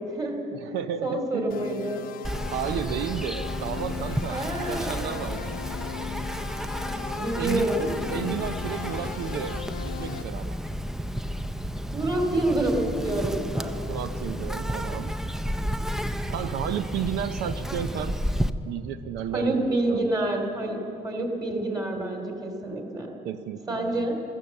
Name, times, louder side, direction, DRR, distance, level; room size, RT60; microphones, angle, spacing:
voice 1, 0.0-0.5 1.0-2.0 4.3-5.4 7.2-7.9 11.9-13.8 19.3-20.8 21.0-23.1 23.7-24.2, right 1 dB, 25° right, 3 dB, 2.7 m, -28 dB
voice 2, 0.5-1.7 2.5-5.4 7.4-9.6 9.8-10.6 13.9-15.2 16.3-18.1 18.6-20.0 23.2-24.2, right 9 dB, 85° right, 10 dB, 0.6 m, -33 dB
sound 1, 1.5-10.2, left 12 dB, 60° left, 0.5 m, -38 dB
Insect, 2.2-18.5, equal, 5° right, 0.5 m, -32 dB
14.0 x 13.5 x 7.5 m, 2.6 s
cardioid pair, 110°, 17 cm